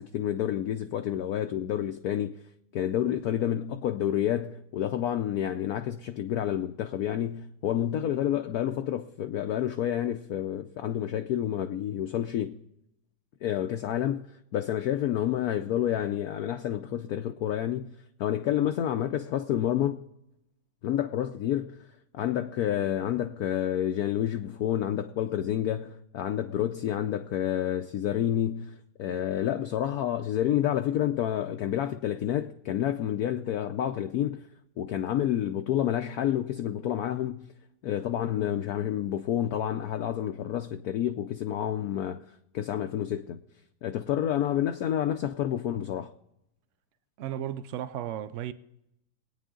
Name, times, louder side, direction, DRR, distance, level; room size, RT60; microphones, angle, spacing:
voice 1, 0.0-2.4 2.7-12.6 13.4-20.0 20.8-21.9 22.1-34.5 34.8-37.5 37.8-43.4 43.8-46.1, left 11 dB, 70° left, 1.0 m, -29 dB
voice 2, 47.2-48.5, right 11 dB, 85° right, 0.6 m, -34 dB
22.0 x 9.2 x 3.7 m
omnidirectional pair, 2.0 m